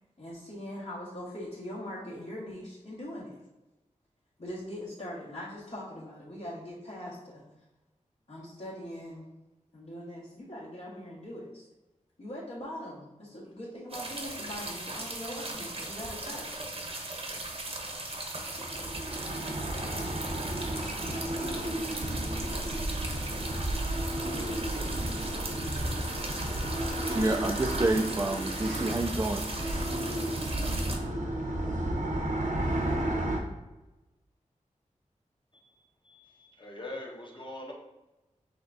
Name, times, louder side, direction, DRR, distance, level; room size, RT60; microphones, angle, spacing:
voice 1, 0.2-3.4 4.4-7.4 8.3-9.3 9.7-11.7 12.2-16.5, left 1 dB, 65° left, -10 dB, 1.6 m, -41 dB
sound 1, 13.9-31.0, right 2 dB, 50° right, 0.9 m, -38 dB
sound 2, 18.5-33.4, right 1 dB, 75° right, 0.9 m, -32 dB
voice 2, 27.1-29.4, right 2 dB, 25° right, 3 dB, 0.4 m, -28 dB
voice 3, 35.5-37.7, left 1 dB, 35° left, -1 dB, 1.1 m, -43 dB
5.8 x 3.5 x 2.6 m, 1.0 s
wide cardioid pair, 85°, 13 cm